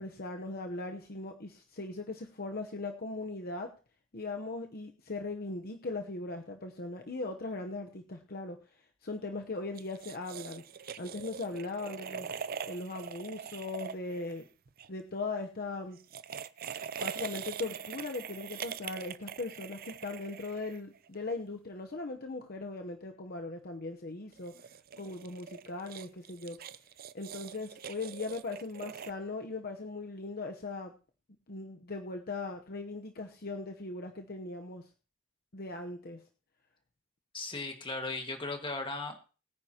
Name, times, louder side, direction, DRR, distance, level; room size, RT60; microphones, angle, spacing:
voice 1, 0.0-3.8 4.1-8.6 9.0-10.7 11.0-12.3 12.7-14.5 14.9-16.0 17.0-24.6 25.0-26.6 27.1-30.9 31.5-34.9 35.5-36.2, left 3 dB, 50° left, 4 dB, 0.9 m, -39 dB
sound 1, 9.7-14.9 15.9-21.1 24.3-29.1, right 7 dB, 45° right, 0.5 m, -43 dB
voice 2, 37.3-39.3, left 3 dB, 25° left, 5 dB, 1.8 m, -37 dB
21.0 x 9.6 x 2.9 m, 0.35 s
head